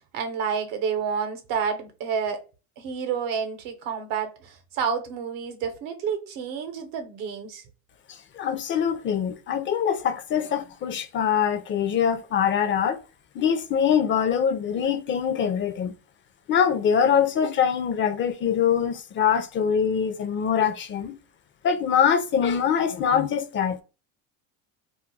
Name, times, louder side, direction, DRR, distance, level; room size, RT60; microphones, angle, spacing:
voice 1, 0.1-2.4 2.8-7.6, right 6 dB, 75° right, 0.8 m, -29 dB
voice 2, 8.1-13.0 13.3-15.9 16.5-21.2 21.6-23.8, left 8 dB, 35° left, 0.4 m, -23 dB
2.3 x 2.2 x 3.9 m
cardioid pair, 110°, 34 cm